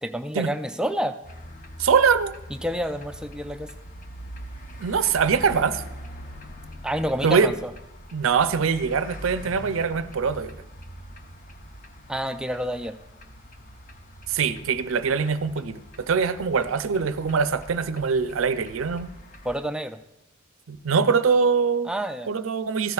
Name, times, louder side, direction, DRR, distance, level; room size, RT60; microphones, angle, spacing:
voice 1, 0.0-1.2 2.5-3.7 6.8-7.7 12.1-13.0 19.4-20.0 21.8-22.3, equal, 5° right, 8 dB, 0.3 m, -28 dB
sound 1, 1.2-19.6, equal, 40° left, 0.9 m, -43 dB
voice 2, 1.8-2.4 4.8-5.8 7.2-7.5 8.1-10.6 14.3-19.1 20.7-21.9 22.3-22.9, right 5 dB, 70° right, 12 dB, 0.5 m, -23 dB
14.5 x 10.5 x 2.4 m, 0.96 s
head